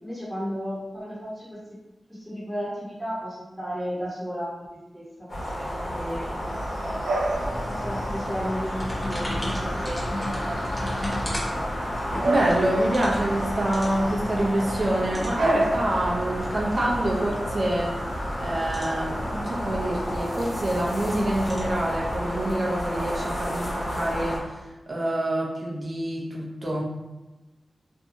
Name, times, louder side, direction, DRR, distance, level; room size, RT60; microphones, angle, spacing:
voice 1, 0.0-1.6 2.1-6.2 6.8-7.2 7.7-10.6 10.9-11.6, equal, 5° right, -9 dB, 1.0 m, -34 dB
sound 1, 5.3-24.4, equal, 55° left, 1.0 m, -31 dB
Bark / Bird vocalization bird call bird song, 6.4-23.9, right 2 dB, 85° right, 0.4 m, -34 dB
sound 2, 7.3-22.2, equal, 15° left, 0.8 m, -36 dB
voice 2, 12.2-18.0 18.4-24.4 24.9-26.8, right 1 dB, 45° right, -3 dB, 0.7 m, -26 dB
2.6 x 2.3 x 2.7 m, 1.1 s
cardioid pair, 60°, 0 cm